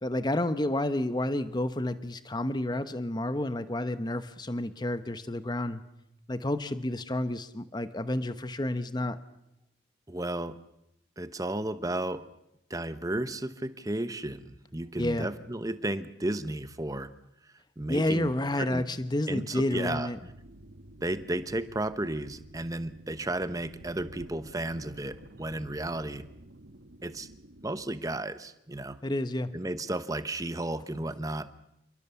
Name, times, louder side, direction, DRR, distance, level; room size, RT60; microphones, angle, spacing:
voice 1, 0.0-5.8 6.3-9.2 15.0-15.3 17.9-20.2 29.0-29.5, left 1 dB, 20° left, 12 dB, 0.9 m, -30 dB
voice 2, 10.1-10.6 11.2-12.3 12.7-17.1 17.8-18.9 19.3-20.1 21.0-26.3 27.0-27.3 27.6-29.0 29.5-31.5, right 1 dB, 20° right, 12 dB, 1.0 m, -33 dB
sound 1, 20.2-28.2, right 1 dB, 65° right, 1.6 m, -51 dB
28.5 x 22.0 x 7.0 m, 0.83 s
head